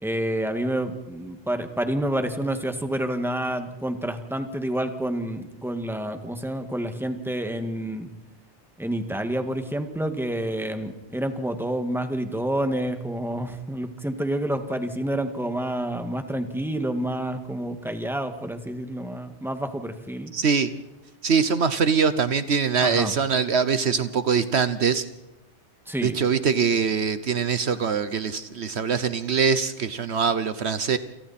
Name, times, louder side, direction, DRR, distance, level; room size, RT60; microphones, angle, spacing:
voice 1, 0.0-8.1 8.8-20.3 22.8-23.1 25.9-26.2, right 1 dB, ahead, 7 dB, 1.9 m, -28 dB
voice 2, 20.3-20.7 21.2-25.0 26.0-31.0, right 6 dB, 65° right, 12 dB, 1.3 m, -23 dB
28.5 x 28.5 x 4.3 m, 0.93 s
omnidirectional pair, 1.2 m